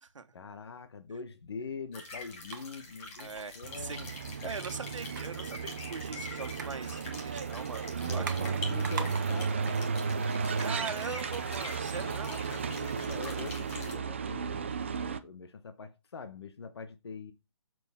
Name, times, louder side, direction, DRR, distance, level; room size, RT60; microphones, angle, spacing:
voice 1, 0.3-4.1 4.4-4.5 8.1-9.8 11.9-17.3, left 5 dB, 55° left, 1.1 m, -44 dB
sound 1, 1.9-13.9, left 3 dB, 10° left, 1.1 m, -46 dB
sound 2, 2.0-12.0, right 5 dB, 40° right, 1.2 m, -48 dB
voice 2, 3.2-4.0 4.4-8.6 10.6-12.4, right 5 dB, 85° right, 1.4 m, -41 dB
sound 3, 3.6-15.2, right 5 dB, 25° right, 0.5 m, -34 dB
7.0 x 6.1 x 3.6 m
hypercardioid pair, 170°, 16 cm